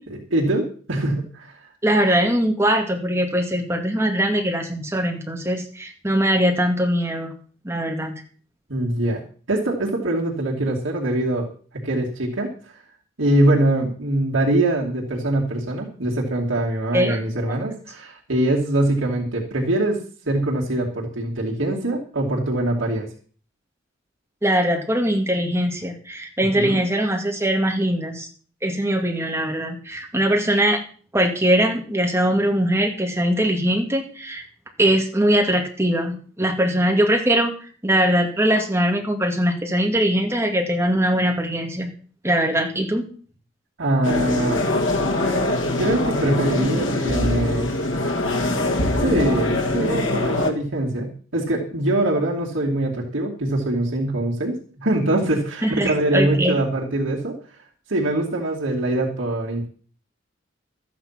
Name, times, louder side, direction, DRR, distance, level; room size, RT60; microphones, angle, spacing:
voice 1, 0.1-1.6 8.7-9.2 9.5-11.5 11.7-12.5 13.2-20.0 20.3-23.1 26.5-26.8 43.8-44.6 45.8-47.7 49.0-57.3 57.9-59.7, right 1 dB, 85° right, -3 dB, 2.7 m, -23 dB
voice 2, 1.8-7.3 7.6-8.1 16.9-17.2 24.4-28.3 28.6-30.8 31.1-34.4 34.8-37.5 37.8-41.9 42.2-43.1 55.6-56.6, equal, 15° right, 2 dB, 2.3 m, -21 dB
sound 1, 44.0-50.5, left 2 dB, 85° left, 2.1 m, -23 dB
13.5 x 9.3 x 5.9 m, 0.43 s
head